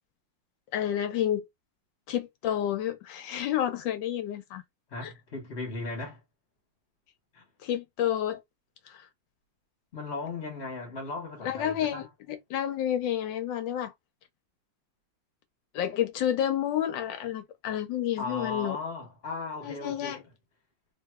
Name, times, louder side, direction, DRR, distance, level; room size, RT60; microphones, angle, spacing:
voice 1, 0.7-1.5 2.1-4.6 5.0-5.1 7.6-8.4 8.9-9.1 11.4-13.9 15.7-18.8 19.6-20.2, left 10 dB, 80° left, 1.3 m, -30 dB
voice 2, 4.9-6.2 7.3-7.4 9.9-12.1 18.2-20.3, left 3 dB, 40° left, 1.4 m, -37 dB
3.3 x 2.8 x 2.3 m
omnidirectional pair, 2.0 m